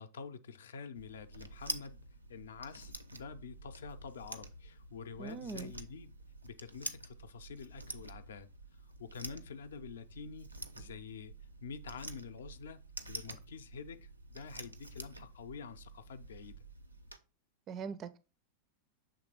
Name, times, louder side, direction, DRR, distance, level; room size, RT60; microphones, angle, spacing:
voice 1, 0.0-6.2 6.4-8.5 9.0-11.3 11.6-12.8 13.1-16.6, left 5 dB, 65° left, 0.5 m, -47 dB
sound 1, 0.9-17.2, right 2 dB, 85° right, 0.6 m, -48 dB
voice 2, 5.2-5.7 17.7-18.2, right 5 dB, 30° right, 0.4 m, -41 dB
7.0 x 3.4 x 4.8 m
figure-of-eight pair, 90°, 0 cm